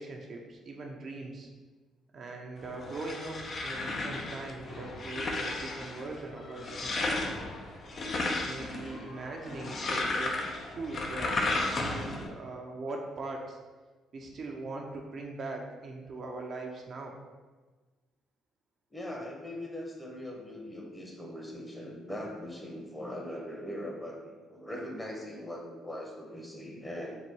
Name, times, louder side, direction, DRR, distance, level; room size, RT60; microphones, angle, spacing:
voice 1, 0.0-1.5 2.1-7.4 8.4-10.4 10.7-11.4 11.7-13.6 14.1-17.1, right 2 dB, 50° right, 1 dB, 0.6 m, -41 dB
sound 1, 2.6-12.3, left 2 dB, 45° left, 0.6 m, -34 dB
voice 2, 18.9-27.2, left 1 dB, 15° left, 0 dB, 1.0 m, -40 dB
4.0 x 2.3 x 4.5 m, 1.3 s
cardioid pair, 80°, 0 cm